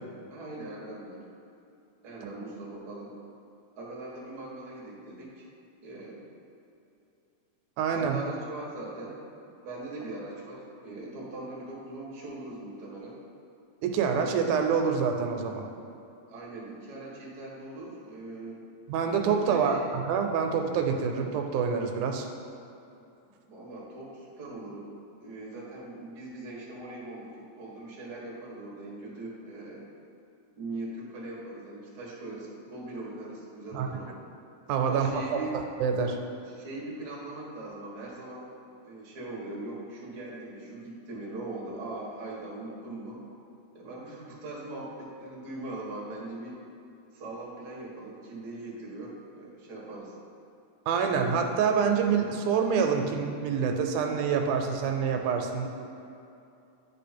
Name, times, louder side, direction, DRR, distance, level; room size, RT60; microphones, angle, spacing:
voice 1, 0.3-1.2 2.0-3.1 3.8-5.5 5.8-6.2 7.9-13.2 16.3-18.6 19.4-19.8 23.2-24.9 25.2-29.8 30.6-34.1 34.8-35.6 36.4-38.5 38.8-43.2 43.7-46.6 47.1-50.1, right 2 dB, 45° right, -4 dB, 1.5 m, -40 dB
voice 2, 7.8-8.2 13.8-15.6 18.9-22.3 33.7-33.9 34.7-35.4 35.8-36.2 50.9-55.7, right 6 dB, 90° right, 4 dB, 2.1 m, -26 dB
10.0 x 3.6 x 4.3 m, 2.7 s
omnidirectional pair, 3.5 m